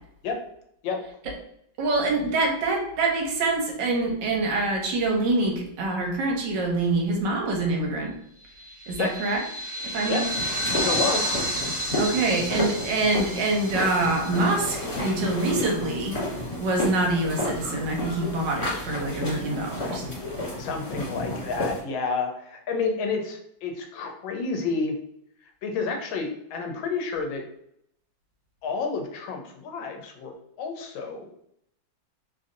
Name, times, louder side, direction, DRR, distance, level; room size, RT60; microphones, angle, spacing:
voice 1, 1.8-8.1 8.9-9.4 9.8-10.3 12.0-16.2 16.6-20.1, right 2 dB, 70° right, 1 dB, 1.3 m, -25 dB
sound 1, 8.6-15.4, equal, 25° right, 1.5 m, -31 dB
sound 2, 10.3-21.8, left 1 dB, 50° left, 2.0 m, -32 dB
voice 2, 10.7-11.4 20.6-24.9 25.6-27.4 28.6-30.3 30.6-31.3, left 4 dB, 85° left, 3 dB, 1.4 m, -30 dB
3.3 x 2.6 x 2.5 m, 0.73 s
omnidirectional pair, 2.1 m